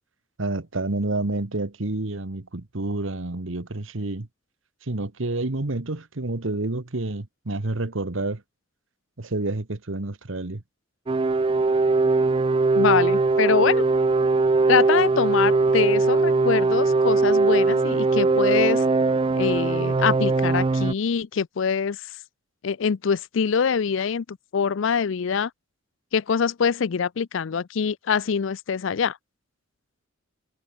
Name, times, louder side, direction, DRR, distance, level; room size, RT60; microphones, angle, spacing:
voice 1, 0.4-4.3 4.8-8.4 9.2-10.6, right 2 dB, 70° right, 1.3 m, -29 dB
sound 1, 11.1-20.9, right 3 dB, 25° right, 0.3 m, -20 dB
voice 2, 12.8-13.9 14.7-18.8 19.4-22.0 22.6-25.5 26.1-29.2, left 6 dB, 70° left, 0.4 m, -24 dB
head